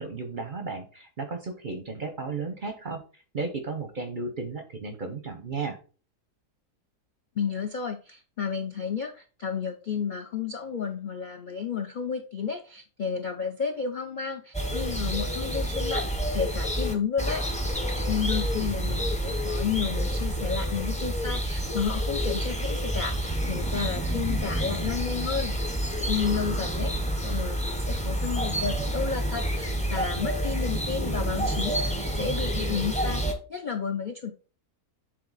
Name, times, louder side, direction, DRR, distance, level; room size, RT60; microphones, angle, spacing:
voice 1, 0.0-3.0 3.3-5.8, right 4 dB, 50° right, 6 dB, 0.6 m, -34 dB
voice 2, 7.4-17.5 17.7-25.5 26.1-34.3, left 6 dB, 85° left, 5 dB, 0.4 m, -32 dB
sound 1, 14.5-33.3, equal, 10° left, 0.5 m, -28 dB
7.7 x 3.8 x 4.0 m, 0.37 s
omnidirectional pair, 1.7 m